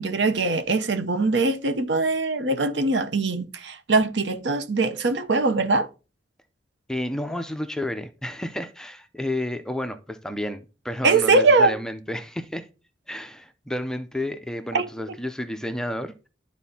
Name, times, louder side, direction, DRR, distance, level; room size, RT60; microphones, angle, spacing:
voice 1, 0.0-5.9 11.0-11.7 14.7-14.9, right 3 dB, 80° right, 0.8 m, -22 dB
voice 2, 6.9-12.7 13.1-16.1, left 1 dB, 5° left, 0.5 m, -31 dB
12.0 x 4.1 x 2.8 m
head